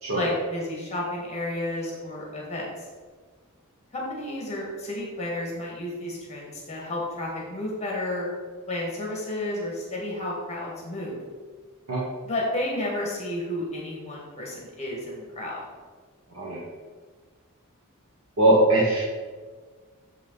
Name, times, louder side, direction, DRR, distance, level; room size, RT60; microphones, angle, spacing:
voice 1, 0.1-2.9 3.9-8.3 8.7-11.2 12.2-15.6, left 1 dB, 30° left, -3 dB, 2.0 m, -32 dB
voice 2, 18.4-19.0, right 1 dB, 70° right, -5 dB, 1.6 m, -20 dB
7.5 x 7.0 x 4.1 m, 1.4 s
head